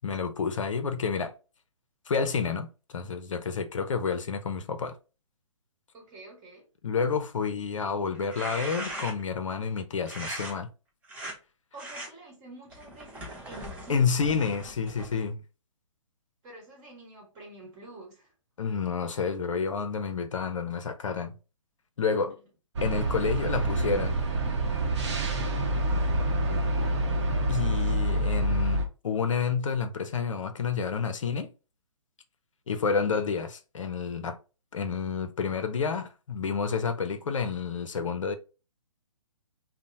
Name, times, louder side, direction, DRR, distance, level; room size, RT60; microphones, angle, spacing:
voice 1, 0.0-1.3 2.1-5.0 6.8-10.7 13.9-15.4 18.6-21.4 22.0-22.3 22.8-24.2 27.5-31.5 32.7-34.4 34.7-38.3, left 5 dB, 70° left, 0.5 m, -29 dB
voice 2, 5.9-6.6 11.7-14.2 16.4-18.3 22.1-22.2 26.5-27.0, right 1 dB, 25° right, 1.1 m, -48 dB
sound 1, 8.1-9.4 10.1-10.5 11.0-11.3 11.8-12.1 12.7-15.3, right 1 dB, 10° right, 0.5 m, -39 dB
sound 2, 22.8-28.9, right 1 dB, 60° right, 0.7 m, -27 dB
2.8 x 2.0 x 2.6 m
figure-of-eight pair, 130°, 17 cm